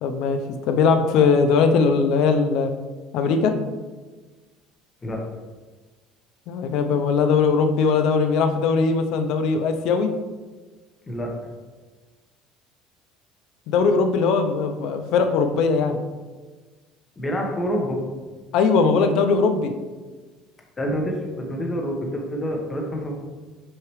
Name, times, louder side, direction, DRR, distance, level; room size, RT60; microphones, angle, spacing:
voice 1, 0.0-2.7 3.1-3.6 6.5-10.1 13.7-16.0 18.5-19.7, left 5 dB, 65° left, 7 dB, 0.6 m, -20 dB
voice 2, 17.2-18.0 20.8-23.2, equal, 20° left, 1 dB, 1.1 m, -27 dB
6.4 x 4.7 x 3.1 m, 1.3 s
cardioid pair, 130°, 0 cm